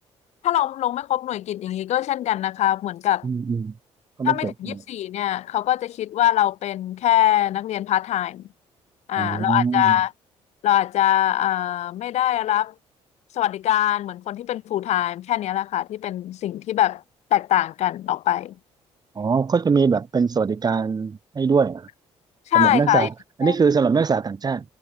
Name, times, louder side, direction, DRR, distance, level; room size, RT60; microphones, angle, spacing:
voice 1, 0.4-3.3 4.2-8.4 9.1-10.1 10.6-12.7 13.3-17.0 17.3-18.5 22.5-23.1 23.4-23.5, left 12 dB, 75° left, 4.2 m, -23 dB
voice 2, 3.2-3.7 4.2-4.8 9.2-10.0 19.2-21.9 22.5-23.1 23.4-24.6, right 5 dB, 35° right, 3.9 m, -22 dB
cardioid pair, 90°, 12 cm